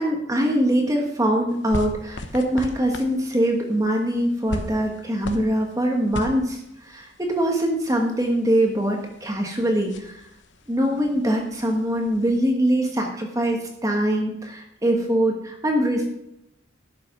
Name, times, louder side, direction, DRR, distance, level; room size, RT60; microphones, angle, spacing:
voice 1, 0.0-10.3 10.7-16.1, right 1 dB, 15° right, 1 dB, 1.3 m, -23 dB
sound 1, 1.5-12.4, left 1 dB, 65° left, 1.0 m, -39 dB
12.0 x 6.1 x 6.0 m, 0.83 s
head